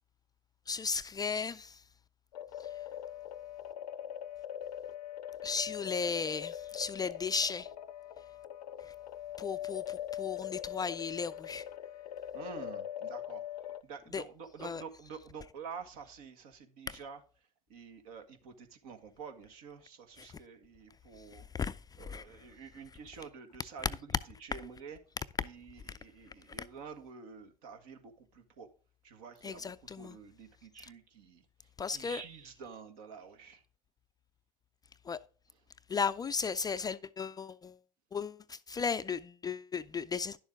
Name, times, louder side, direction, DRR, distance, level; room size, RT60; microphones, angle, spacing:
voice 1, 0.7-1.8 5.4-7.7 9.4-11.6 14.1-14.2 14.6-14.8 16.9-17.0 20.2-20.3 21.3-22.2 29.4-30.2 31.8-32.2 35.1-35.2 35.9-37.8 38.1-40.4, left 5 dB, 20° left, 0.4 m, -35 dB
sound 1, 2.3-13.8, left 11 dB, 80° left, 0.6 m, -42 dB
voice 2, 12.3-13.4 13.8-17.2 17.7-21.5 22.0-24.0 24.4-25.0 25.4-28.7 29.0-31.4 31.9-33.6, right 6 dB, 70° right, 1.6 m, -48 dB
10.5 x 7.1 x 3.5 m
hypercardioid pair, 80°, 20 cm